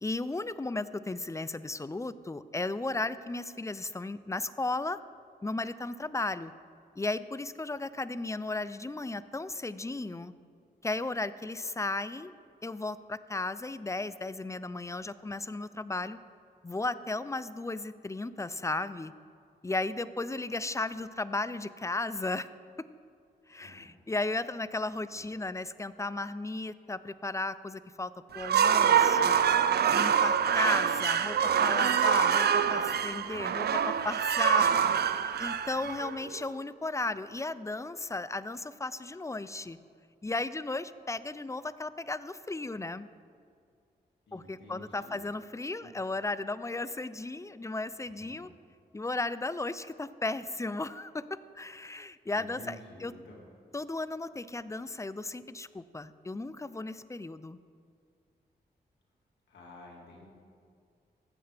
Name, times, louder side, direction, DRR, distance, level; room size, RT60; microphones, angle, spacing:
voice 1, 0.0-5.0 5.4-6.5 7.0-10.3 10.8-12.3 12.6-16.2 16.6-19.1 19.6-22.5 23.5-29.4 29.9-39.8 40.2-43.1 44.3-48.5 48.9-53.1 53.7-57.6, left 2 dB, 15° left, 15 dB, 0.5 m, -35 dB
voice 2, 23.5-23.9 25.1-25.2 44.3-45.2 45.8-45.9 48.0-48.4 52.3-53.4 59.5-60.3, left 1 dB, 90° left, -2 dB, 2.0 m, -50 dB
sound 1, 28.3-36.4, right 8 dB, 65° right, 0.5 m, -25 dB
15.5 x 7.9 x 3.4 m, 2.2 s
cardioid pair, 45°, 18 cm